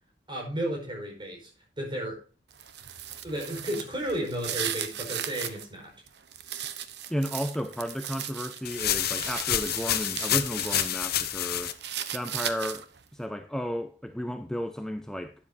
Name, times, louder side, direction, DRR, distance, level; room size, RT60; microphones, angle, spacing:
voice 1, 0.3-1.5 1.8-2.2 3.2-5.9, right 1 dB, 30° right, 4.8 m, -33 dB
sound 1, 2.5-5.7 6.1-10.9 11.2-13.0, right 10 dB, 70° right, 1.1 m, -37 dB
voice 2, 7.1-11.7 12.1-12.9 13.1-15.3, equal, 5° left, 0.6 m, -33 dB
sound 2, 8.7-11.7, left 11 dB, 60° left, 0.9 m, -28 dB
12.0 x 10.0 x 2.7 m
head